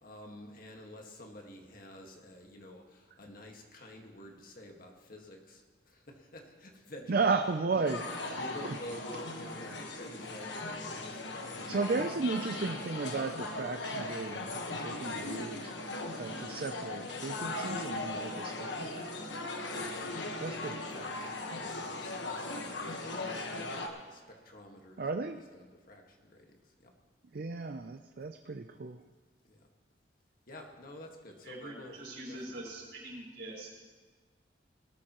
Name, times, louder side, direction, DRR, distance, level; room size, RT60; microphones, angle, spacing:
voice 1, 0.0-7.3 7.7-8.1 8.4-11.9 19.7-20.2 20.7-25.0 25.5-26.9 29.5-29.6 30.5-32.6, left 1 dB, 50° left, 1 dB, 1.8 m, -50 dB
voice 2, 7.1-8.8 11.6-15.7 16.1-19.1 20.4-21.0 25.0-25.4 27.3-29.0, right 4 dB, 55° right, 7 dB, 0.5 m, -34 dB
sound 1, 7.9-23.9, left 2 dB, 80° left, 1.3 m, -38 dB
voice 3, 31.4-33.9, right 1 dB, 70° right, -4 dB, 4.9 m, -44 dB
19.5 x 13.0 x 3.1 m, 1.5 s
head